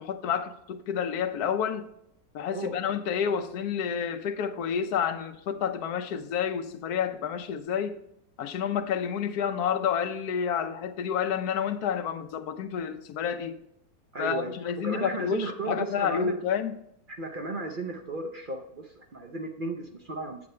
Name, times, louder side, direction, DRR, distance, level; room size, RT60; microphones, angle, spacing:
voice 1, 0.0-1.9 2.3-8.0 8.4-13.6 14.2-16.7, left 8 dB, 85° left, 1.2 m, -29 dB
voice 2, 14.1-14.5 14.8-16.4 17.2-20.4, right 3 dB, 45° right, 0.7 m, -34 dB
8.6 x 7.8 x 3.2 m
omnidirectional pair, 1.6 m